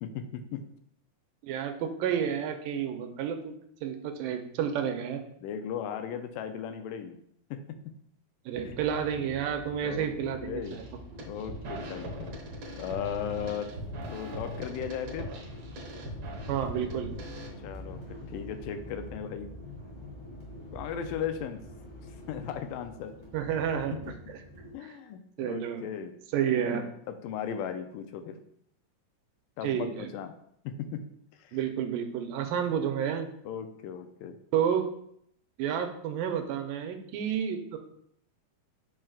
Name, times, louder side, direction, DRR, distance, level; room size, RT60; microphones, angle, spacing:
voice 1, 0.0-0.6 5.4-7.2 7.5-7.6 8.6-8.7 9.8-10.1 10.4-10.8 11.3-12.3 12.8-13.7 14.1-15.3 17.6-18.0 18.3-19.5 20.7-21.6 22.3-23.2 24.7-26.1 26.6-28.4 29.6-30.3 30.6-31.0 31.4-31.6 32.5-32.6 33.5-34.4, left 8 dB, 85° left, 8 dB, 2.2 m, -36 dB
voice 2, 1.4-3.6 3.8-5.2 8.5-10.8 16.5-17.2 23.3-24.0 24.3-24.4 24.8-25.0 25.4-25.8 26.3-26.8 29.6-30.1 31.5-33.3 34.5-34.9 35.6-37.8, right 8 dB, 85° right, 6 dB, 2.4 m, -30 dB
sound 1, 8.5-24.7, left 1 dB, 25° left, 1.3 m, -46 dB
sound 2, 10.6-10.9 11.2-17.5, equal, 60° right, 1.3 m, -40 dB
7.5 x 5.8 x 2.4 m, 0.70 s
omnidirectional pair, 3.9 m